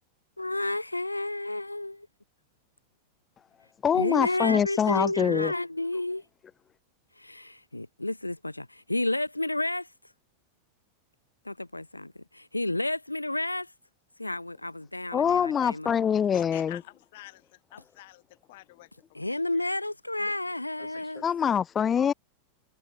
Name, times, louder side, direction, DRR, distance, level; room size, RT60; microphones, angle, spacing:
voice 1, 0.4-2.0 3.9-6.2 7.2-9.9 11.4-13.7 14.2-15.9 19.1-21.2, left 2 dB, 85° left, 2.7 m, -31 dB
voice 2, 3.8-5.5 15.1-16.8 21.2-22.1, left 8 dB, 25° left, 1.0 m, -24 dB
voice 3, 16.3-19.6 20.2-20.4, left 18 dB, 50° left, 7.8 m, -48 dB
figure-of-eight pair, 90°, 0 cm